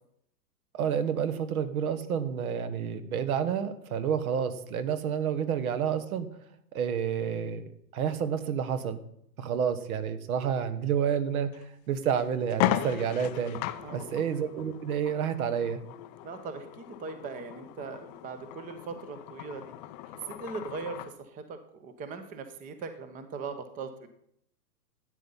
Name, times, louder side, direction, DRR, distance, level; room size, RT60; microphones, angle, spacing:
voice 1, 0.7-6.3 6.7-9.0 9.4-11.5 11.9-13.6 13.9-15.8, right 8 dB, 60° right, 12 dB, 1.4 m, -29 dB
sound 1, 11.5-11.6 12.1-12.2 12.5-21.2, left 14 dB, 25° left, 0.5 m, -36 dB
voice 2, 13.8-14.2 16.2-19.7 20.1-24.1, right 4 dB, 15° right, 9 dB, 0.8 m, -40 dB
13.0 x 8.4 x 5.5 m, 0.72 s
hypercardioid pair, 130°, 49 cm